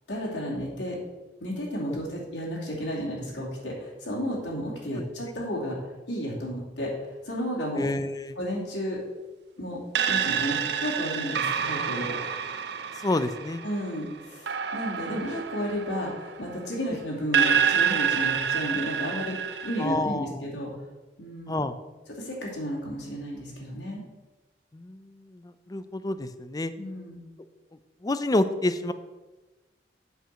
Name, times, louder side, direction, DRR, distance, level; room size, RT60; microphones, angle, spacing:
voice 1, 0.1-1.0 1.4-5.8 6.1-7.9 8.4-9.0 9.6-9.8 10.1-12.2 13.6-20.7 21.2-21.6 22.2-24.0 26.8-27.3, equal, 90° left, -4 dB, 2.6 m, -32 dB
voice 2, 7.7-8.4 13.0-13.6 19.8-20.4 21.5-21.8 24.7-26.7 28.0-28.9, left 2 dB, 20° left, 12 dB, 0.4 m, -29 dB
sound 1, 9.9-16.8 17.3-19.9, right 7 dB, 65° right, 0.5 m, -28 dB
8.0 x 4.7 x 6.3 m, 1.1 s
head